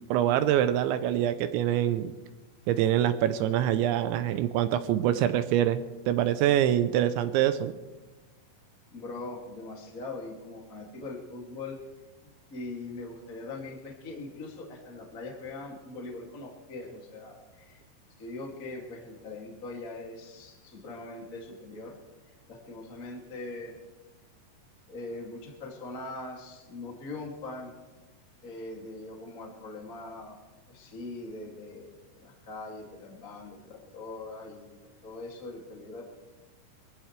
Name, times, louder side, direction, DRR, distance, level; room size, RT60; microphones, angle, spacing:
voice 1, 0.1-2.1 2.7-7.7, right 11 dB, 80° right, 10 dB, 2.9 m, -25 dB
voice 2, 8.9-11.8 12.2-17.8 18.2-22.0 22.5-23.8 24.9-27.8 28.4-30.4 30.7-31.9 32.2-34.7 35.0-36.0, left 2 dB, 30° left, -1 dB, 1.8 m, -41 dB
23.0 x 16.0 x 3.3 m, 1.2 s
omnidirectional pair, 5.4 m